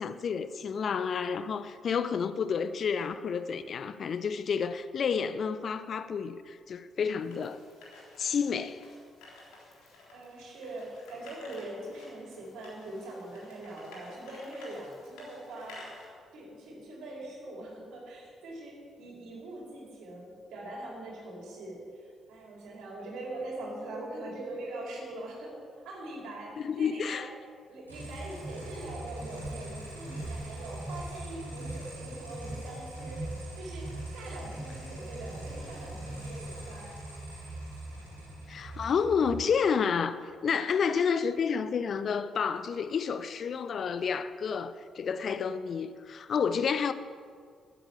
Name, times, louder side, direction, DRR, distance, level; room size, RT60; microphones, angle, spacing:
voice 1, 0.0-7.6 8.2-8.8 26.6-27.3 38.5-46.9, left 6 dB, 50° left, 13 dB, 0.6 m, -30 dB
sound 1, 7.2-16.1, left 2 dB, 65° left, 3.5 m, -52 dB
voice 2, 10.1-15.8 16.3-25.5 25.8-27.2 27.7-33.2 33.6-36.9, right 1 dB, 60° right, -2 dB, 4.6 m, -42 dB
sound 2, 27.9-39.4, right 1 dB, 90° right, 3.1 m, -40 dB
13.0 x 10.0 x 8.2 m, 2.1 s
figure-of-eight pair, 40°, 0 cm